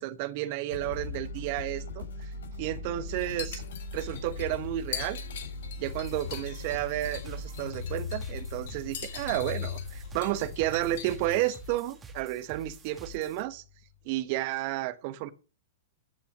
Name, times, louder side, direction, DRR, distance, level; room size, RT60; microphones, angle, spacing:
voice 1, 0.0-2.0 2.6-3.6 3.9-5.2 5.8-13.6 14.0-15.3, right 15 dB, 50° right, 1.2 m, -32 dB
sound 1, 0.7-14.1, left 4 dB, 80° left, 6.3 m, -40 dB
sound 2, 3.1-11.8, left 10 dB, 65° left, 2.4 m, -43 dB
sound 3, 5.8-13.4, right 2 dB, 20° right, 2.1 m, -48 dB
15.0 x 5.7 x 7.3 m
hypercardioid pair, 105°, 0 cm